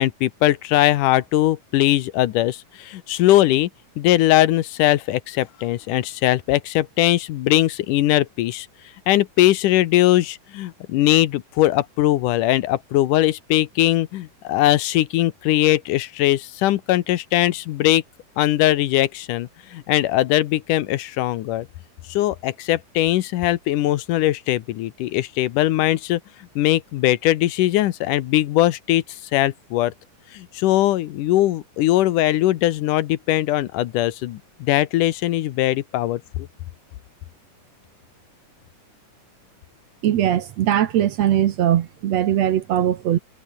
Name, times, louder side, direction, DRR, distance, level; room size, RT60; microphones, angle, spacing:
voice 1, 0.0-3.7 4.0-8.7 9.1-18.0 18.4-21.7 22.1-26.2 26.6-29.0 29.3-29.9 30.3-36.5, left 15 dB, 80° left, 2.4 m, -20 dB
voice 2, 40.0-43.2, right 11 dB, 65° right, 2.0 m, -20 dB
omnidirectional pair, 3.8 m